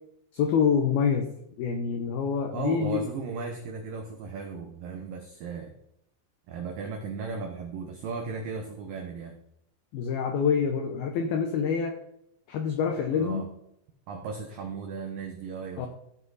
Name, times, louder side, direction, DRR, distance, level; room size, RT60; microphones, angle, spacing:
voice 1, 0.3-1.3 1.6-3.1 9.9-12.0 12.5-13.5 15.8-15.9, left 6 dB, 85° left, 4 dB, 2.1 m, -26 dB
voice 2, 2.5-5.7 6.5-9.4 13.1-13.5 14.1-15.9, right 5 dB, 85° right, 3 dB, 2.0 m, -36 dB
16.0 x 5.6 x 4.0 m, 0.75 s
omnidirectional pair, 5.6 m